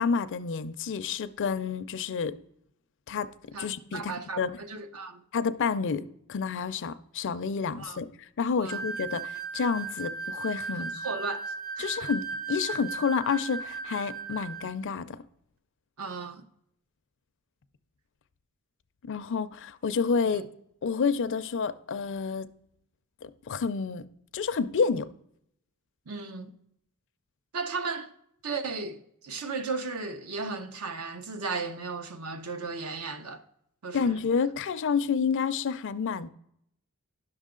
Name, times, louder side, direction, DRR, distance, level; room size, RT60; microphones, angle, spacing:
voice 1, 0.0-2.4 3.1-3.3 3.6-4.6 5.3-8.1 8.4-10.9 11.8-15.2 19.0-20.4 20.8-22.5 23.2-24.0 24.3-25.1 33.9-36.3, left 5 dB, 55° left, 0.5 m, -29 dB
voice 2, 3.5-5.2 7.8-8.0 8.6-8.8 10.8-11.4 11.8-11.9 16.0-16.4 20.2-20.4 26.1-26.5 27.5-28.1 28.4-33.4 33.8-34.2, right 4 dB, 75° right, 0.8 m, -35 dB
sound 1, 8.7-14.8, right 4 dB, 40° right, 0.6 m, -36 dB
11.0 x 6.3 x 3.7 m
head